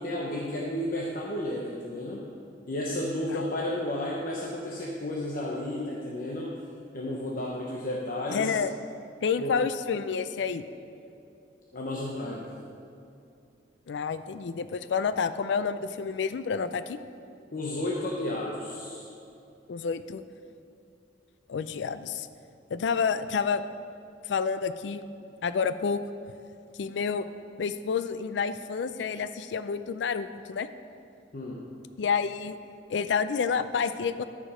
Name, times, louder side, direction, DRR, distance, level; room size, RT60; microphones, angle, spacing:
voice 1, 0.0-2.2 2.7-6.5 6.9-8.6 9.4-9.5 11.7-12.5 17.5-19.1 31.3-31.6, left 1 dB, 50° left, -3 dB, 0.9 m, -32 dB
voice 2, 8.3-8.7 9.2-10.6 13.9-17.0 19.7-20.2 21.5-22.3 22.7-23.6 24.3-25.0 25.4-26.0 26.7-27.3 27.6-30.7 32.0-32.6 32.9-34.2, left 6 dB, 75° left, 12 dB, 0.4 m, -29 dB
12.5 x 5.1 x 5.0 m, 2.6 s
head